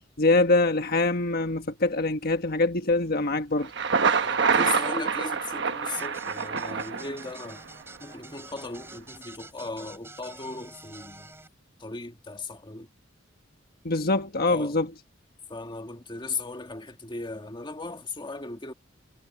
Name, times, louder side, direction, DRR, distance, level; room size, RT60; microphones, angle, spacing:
voice 1, 0.2-3.7 13.8-14.9, left 2 dB, 55° left, 1.4 m, -24 dB
Thunder, 3.6-7.6, right 5 dB, 65° right, 1.2 m, -26 dB
voice 2, 4.2-7.6 8.0-11.3 11.8-12.9 14.5-14.8 15.5-18.7, left 3 dB, 25° left, 1.6 m, -37 dB
sound 1, 6.0-11.5, right 2 dB, 15° right, 5.6 m, -48 dB
head